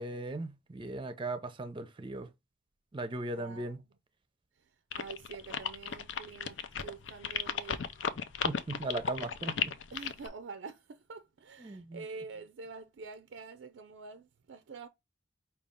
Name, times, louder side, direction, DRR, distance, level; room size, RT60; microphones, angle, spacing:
voice 1, 0.0-2.3 2.9-3.8 8.4-9.8 11.6-12.0, right 2 dB, 25° right, 0.5 m, -38 dB
voice 2, 3.3-3.7 4.6-7.9 9.9-14.9, right 4 dB, 80° right, 0.4 m, -47 dB
sound 1, 4.9-10.3, left 7 dB, 75° left, 0.5 m, -34 dB
5.2 x 2.4 x 3.5 m
head